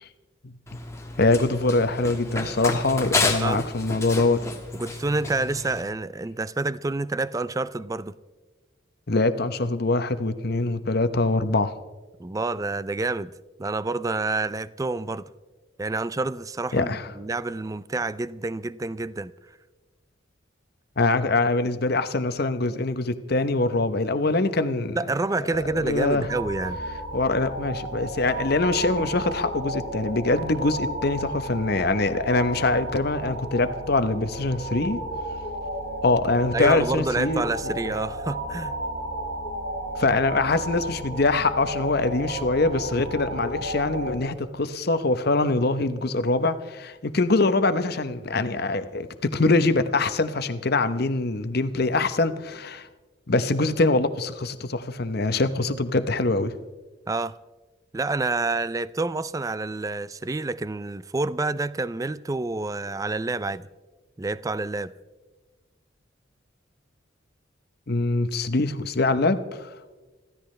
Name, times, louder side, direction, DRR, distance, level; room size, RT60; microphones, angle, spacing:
Run, 0.7-5.8, left 3 dB, 15° left, 1.5 m, -30 dB
voice 1, 1.2-4.4 9.1-11.7 16.7-17.1 21.0-25.0 25.8-26.3 27.1-35.0 36.0-37.7 40.0-52.9 53.3-56.5 67.9-69.7, left 2 dB, 55° left, 0.9 m, -23 dB
voice 2, 4.7-8.1 12.2-13.3 13.6-15.3 15.8-19.3 25.0-26.8 36.5-38.8 57.1-57.4 57.9-63.7 64.2-64.9, right 3 dB, 15° right, 0.4 m, -28 dB
sound 1, 25.5-44.2, right 1 dB, 90° right, 4.8 m, -33 dB
26.0 x 15.0 x 3.3 m
head